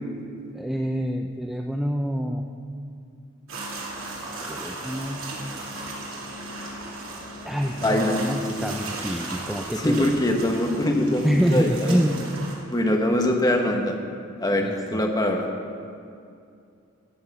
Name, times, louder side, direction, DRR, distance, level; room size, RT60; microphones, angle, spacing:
voice 1, 0.5-2.4 4.5-5.2 7.4-10.1 11.2-12.3 14.6-15.0, equal, ahead, 2 dB, 0.4 m, -26 dB
sound 1, 3.5-12.6, right 2 dB, 80° right, 2.6 m, -36 dB
voice 2, 7.8-8.2 9.8-12.0 12.7-14.0 14.4-15.5, left 1 dB, 20° left, 2 dB, 1.2 m, -23 dB
13.5 x 7.7 x 7.0 m, 2.4 s
head